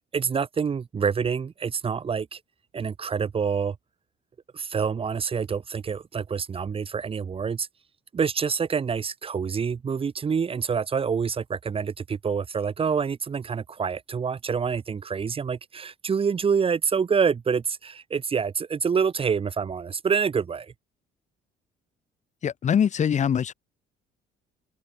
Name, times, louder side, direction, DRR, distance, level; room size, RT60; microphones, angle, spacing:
voice 1, 0.1-2.4 2.7-3.8 4.5-7.7 8.1-20.7, right 6 dB, 35° right, 2.1 m, -27 dB
voice 2, 22.4-23.5, left 8 dB, 45° left, 3.5 m, -23 dB
cardioid pair, 110°, 17 cm